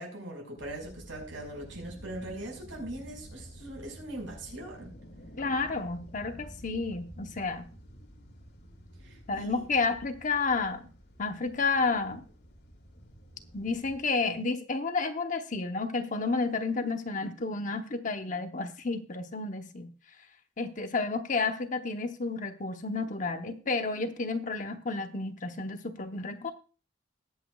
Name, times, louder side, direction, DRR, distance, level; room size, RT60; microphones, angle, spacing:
voice 1, 0.0-4.9 9.0-9.6, right 1 dB, 75° right, 1 dB, 5.4 m, -41 dB
sound 1, 0.6-14.0, equal, 60° left, 2.6 m, -50 dB
voice 2, 5.4-7.6 9.3-10.8 11.2-12.3 13.5-19.9 20.6-26.5, left 3 dB, 40° left, 6 dB, 1.0 m, -31 dB
21.0 x 8.3 x 2.4 m, 0.37 s
head